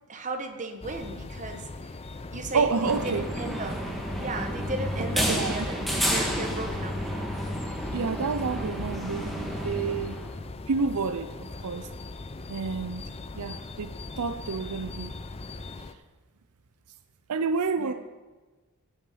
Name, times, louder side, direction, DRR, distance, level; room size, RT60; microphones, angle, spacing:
voice 1, 0.1-2.0 2.3-3.8 4.2-7.0 17.8-17.9, right 2 dB, 35° right, 5 dB, 1.2 m, -35 dB
sound 1, 0.8-15.9, left 3 dB, 25° left, 0.5 m, -40 dB
voice 2, 2.5-3.2 5.3-5.7 7.9-10.2 10.7-11.9 12.5-13.0 13.3-13.9 14.2-15.1 17.3-17.9, right 4 dB, 85° right, 11 dB, 0.6 m, -29 dB
sound 2, 2.8-10.4, equal, ahead, 1.6 m, -31 dB
15.5 x 7.1 x 5.7 m, 1.2 s
head